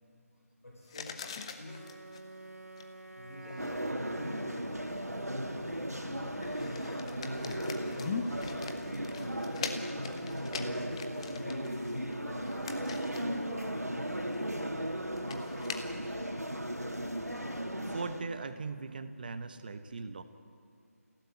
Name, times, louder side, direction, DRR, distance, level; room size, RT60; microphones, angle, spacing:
voice 1, 0.6-2.0 3.1-5.1 5.5-9.8 10.5-15.3, left 1 dB, 65° left, -2 dB, 5.5 m, -48 dB
sound 1, 0.9-13.8 14.1-14.3 14.6-14.7 15.1-15.8, left 5 dB, 20° left, 1.2 m, -43 dB
Wind instrument woodwind instrument, 1.6-5.6, right 2 dB, 65° right, 1.7 m, -48 dB
sound 2, 3.6-18.2, equal, 85° right, 2.9 m, -36 dB
voice 2, 15.6-16.2 17.9-20.2, right 4 dB, 35° right, 10 dB, 1.2 m, -40 dB
28.5 x 17.0 x 9.2 m, 2.4 s
figure-of-eight pair, 155°, 8 cm